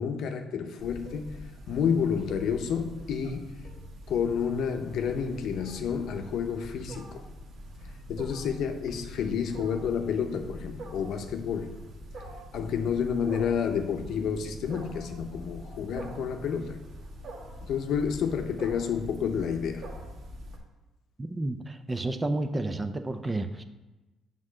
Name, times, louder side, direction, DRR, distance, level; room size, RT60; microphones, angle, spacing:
voice 1, 0.0-1.3 1.7-3.5 4.1-7.2 8.1-11.7 12.5-16.8 17.6-19.9, left 7 dB, 70° left, 0.7 m, -30 dB
Wild animals, 0.8-20.6, equal, 60° right, 1.3 m, -43 dB
voice 2, 21.2-23.6, right 2 dB, 15° right, 0.5 m, -31 dB
7.5 x 3.7 x 6.3 m
cardioid pair, 130°, 0 cm